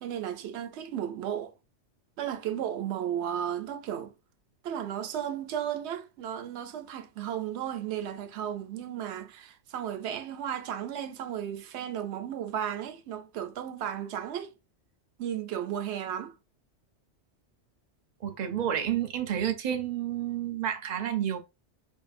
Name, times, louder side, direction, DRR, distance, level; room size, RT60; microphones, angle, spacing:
voice 1, 0.0-1.5 2.2-4.1 4.6-14.5 15.2-16.3, right 10 dB, 75° right, 0.8 m, -34 dB
voice 2, 18.2-21.4, right 10 dB, 50° right, 0.6 m, -30 dB
4.8 x 2.6 x 2.5 m
omnidirectional pair, 1.2 m